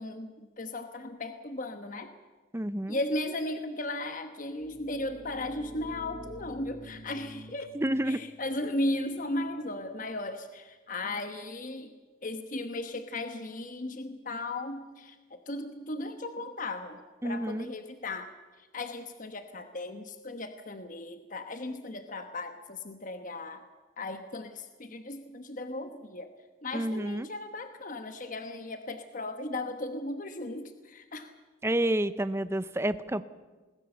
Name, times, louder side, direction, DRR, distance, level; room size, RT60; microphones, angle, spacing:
voice 1, 0.0-2.1 2.9-7.7 8.0-11.9 12.2-18.3 18.6-23.6 24.0-26.3 26.6-31.3, left 2 dB, 40° left, 8 dB, 1.1 m, -36 dB
voice 2, 2.5-3.0 7.7-8.2 17.2-17.7 26.7-27.3 31.6-33.2, right 1 dB, 15° right, 14 dB, 0.6 m, -29 dB
sound 1, 4.5-10.1, equal, 5° left, 2.2 m, -50 dB
21.0 x 20.0 x 6.9 m, 1.3 s
head